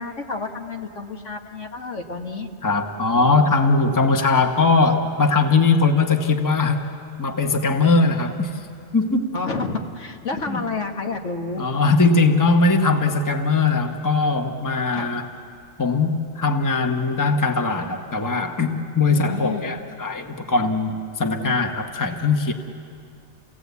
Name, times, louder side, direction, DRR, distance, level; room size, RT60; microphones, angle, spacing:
voice 1, 0.0-2.5 3.1-3.3 9.3-11.7 14.9-15.2 19.1-19.7, left 4 dB, 65° left, 3 dB, 1.7 m, -30 dB
voice 2, 2.6-6.8 7.2-8.5 8.9-9.3 10.5-10.6 11.6-15.3 15.8-22.5, left 3 dB, 15° left, 4 dB, 1.1 m, -20 dB
28.5 x 17.5 x 8.3 m, 2.4 s
omnidirectional pair, 1.4 m